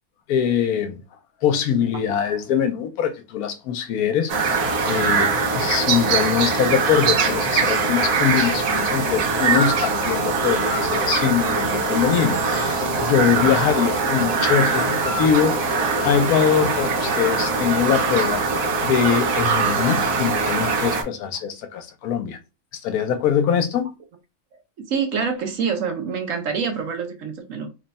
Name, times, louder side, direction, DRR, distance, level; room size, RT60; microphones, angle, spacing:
voice 1, 0.3-1.0 1.4-22.4 22.8-23.9, left 8 dB, 75° left, 1.1 m, -23 dB
sound 1, 4.3-21.0, right 4 dB, 85° right, 1.4 m, -22 dB
voice 2, 13.6-14.3 15.7-16.1 19.4-19.7 24.8-27.7, right 6 dB, 65° right, 1.1 m, -28 dB
3.1 x 2.3 x 4.0 m
omnidirectional pair, 1.6 m